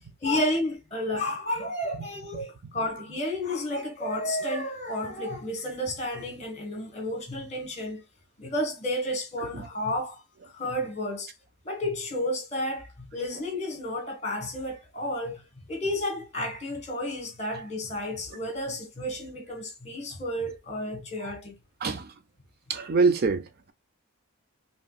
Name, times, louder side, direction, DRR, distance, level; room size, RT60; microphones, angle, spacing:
voice 1, 0.2-8.0 8.4-11.3 11.6-21.5, left 1 dB, 30° left, 1.4 m, -31 dB
voice 2, 21.8-22.1 22.7-23.7, right 4 dB, 45° right, 0.4 m, -25 dB
4.9 x 3.0 x 2.3 m
head